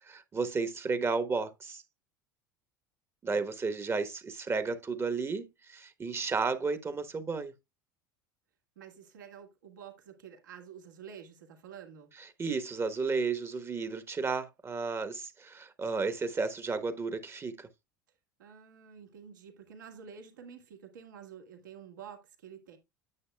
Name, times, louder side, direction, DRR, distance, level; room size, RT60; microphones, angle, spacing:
voice 1, 0.0-1.8 3.2-7.5 12.2-17.7, right 4 dB, 25° right, 1.1 m, -33 dB
voice 2, 8.8-12.1 18.4-22.8, right 7 dB, 80° right, 2.1 m, -49 dB
9.6 x 7.9 x 2.3 m
hypercardioid pair, 75°, 10 cm